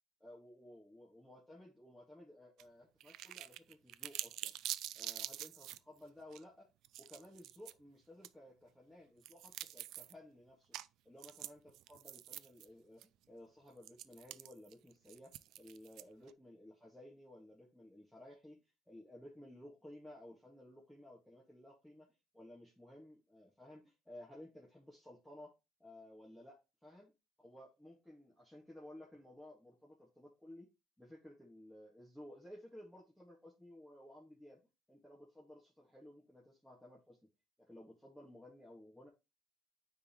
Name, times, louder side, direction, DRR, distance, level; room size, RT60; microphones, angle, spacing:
voice 1, 0.2-4.5 5.0-6.7 7.0-10.8 11.1-25.5 25.8-27.1 27.4-30.7 31.0-34.6 34.9-37.2 37.6-39.1, left 1 dB, 5° left, 1.8 m, -56 dB
sound 1, 2.6-2.7 3.0-5.8 6.3-6.4 6.8-7.7 8.2-8.3 9.2-10.1 10.7-10.9 11.2-12.7 13.0-13.1 13.8-16.3, right 14 dB, 75° right, 0.3 m, -46 dB
9.3 x 3.6 x 3.0 m
cardioid pair, 120°, 0 cm